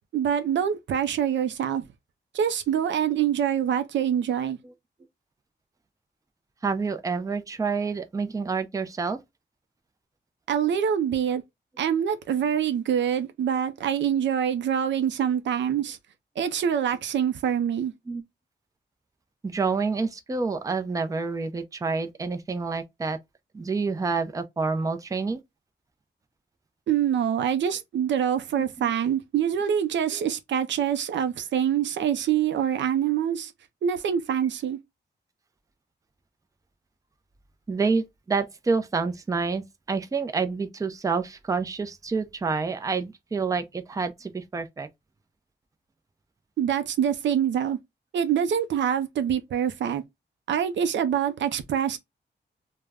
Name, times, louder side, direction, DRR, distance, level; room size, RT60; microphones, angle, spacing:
voice 1, 0.1-1.9 2.3-4.6 10.5-11.4 11.8-16.0 16.4-17.9 26.9-33.5 33.8-34.8 46.6-47.8 48.1-50.0 50.5-52.0, right 9 dB, 85° right, 0.4 m, -25 dB
voice 2, 6.6-9.2 18.1-18.2 19.4-23.2 23.5-25.4 28.8-28.9 30.1-30.2 37.7-44.9, right 4 dB, 20° right, 0.4 m, -28 dB
2.2 x 2.0 x 3.4 m
wide cardioid pair, 100°, 18 cm